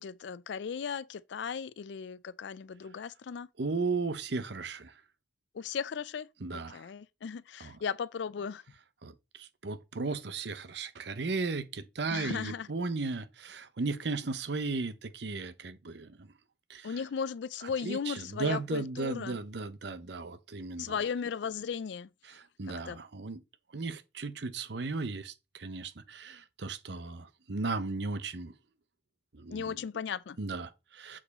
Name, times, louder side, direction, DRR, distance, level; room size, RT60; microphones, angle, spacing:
voice 1, 0.0-3.5 5.5-8.6 12.1-12.7 16.8-19.4 20.8-22.1 22.7-23.0 29.5-30.4, left 6 dB, 70° left, 0.4 m, -36 dB
voice 2, 3.6-4.9 6.4-6.9 7.6-7.8 9.0-16.3 16.7-16.9 17.8-21.0 22.2-23.4 23.7-28.5 29.3-29.8 30.4-31.2, right 3 dB, 65° right, 0.7 m, -36 dB
7.2 x 4.7 x 4.1 m
head